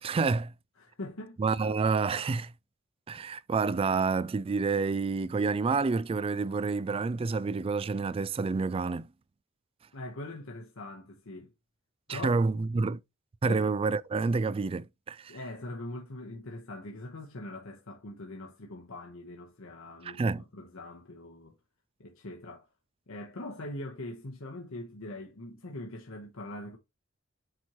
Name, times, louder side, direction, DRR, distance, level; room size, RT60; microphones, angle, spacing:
voice 1, 0.0-0.5 1.4-2.5 3.1-9.1 12.1-13.0 13.4-15.3 20.0-20.4, right 4 dB, 25° right, 0.3 m, -28 dB
voice 2, 0.8-1.4 9.9-11.5 12.1-12.4 13.4-13.7 15.3-21.5 22.0-22.7 23.1-26.8, left 2 dB, 80° left, 1.1 m, -42 dB
7.7 x 4.4 x 3.0 m
head